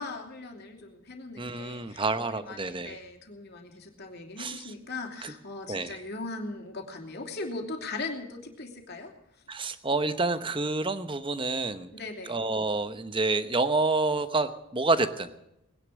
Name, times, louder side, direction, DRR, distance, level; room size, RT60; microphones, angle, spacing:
voice 1, 0.0-9.1 11.9-12.4, left 3 dB, 50° left, 2 dB, 3.0 m, -39 dB
voice 2, 1.4-3.0 4.4-4.7 5.2-5.3 5.7-6.0 9.5-11.9 12.3-15.4, right 3 dB, 25° right, 11 dB, 0.9 m, -28 dB
20.5 x 10.5 x 6.4 m, 0.87 s
head